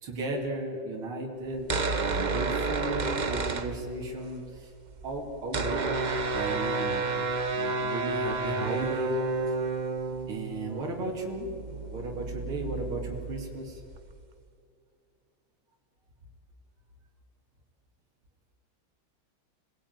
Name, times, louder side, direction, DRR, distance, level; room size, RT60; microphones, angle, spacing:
voice 1, 0.0-1.7 2.0-4.7 5.0-5.8 6.3-7.1 7.6-9.2 9.5-9.6 10.3-13.8, right 2 dB, 80° right, -1 dB, 3.4 m, -35 dB
sound 1, 1.5-4.3 4.6-4.7 4.8-14.3, right 3 dB, 40° right, 0.6 m, -31 dB
26.5 x 19.5 x 9.4 m, 2.4 s
omnidirectional pair, 2.3 m